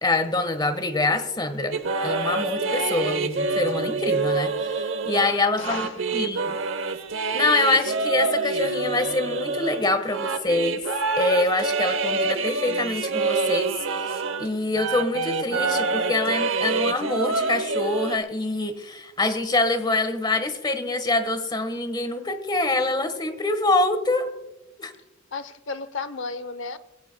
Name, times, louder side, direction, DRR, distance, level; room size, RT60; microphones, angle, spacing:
voice 1, 0.0-1.8 2.0-5.9 6.1-6.6 7.3-10.8 11.2-24.3 24.8-24.9, left 2 dB, 20° left, 1.3 m, -25 dB
sound 1, 1.7-14.5 14.8-18.2, right 3 dB, 65° right, 0.9 m, -26 dB
voice 2, 5.6-6.3 25.3-26.8, left 4 dB, 65° left, 0.8 m, -33 dB
22.0 x 17.0 x 2.2 m
head